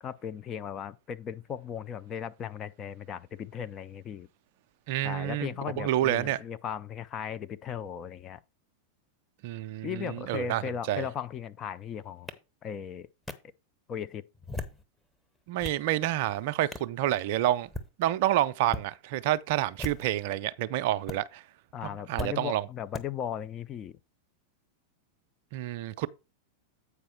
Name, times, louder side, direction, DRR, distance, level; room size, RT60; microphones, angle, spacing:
voice 1, 0.0-4.3 5.0-8.4 9.8-12.3 12.6-13.1 13.9-14.2 21.7-24.0, left 8 dB, 30° left, 0.4 m, -37 dB
voice 2, 4.9-6.4 9.4-10.6 10.9-11.1 15.5-17.7 18.0-21.4 22.1-22.6 25.5-26.1, right 13 dB, 50° right, 0.4 m, -28 dB
sound 1, 12.3-12.4 13.3-13.4 14.3-14.8 15.3-15.8 16.7-16.9 17.6-17.9 18.6-18.9 19.7-20.2 21.1-21.2 22.2-22.3 22.9-23.0, left 2 dB, 5° left, 0.9 m, -37 dB
8.4 x 4.8 x 4.4 m
figure-of-eight pair, 90°, 0 cm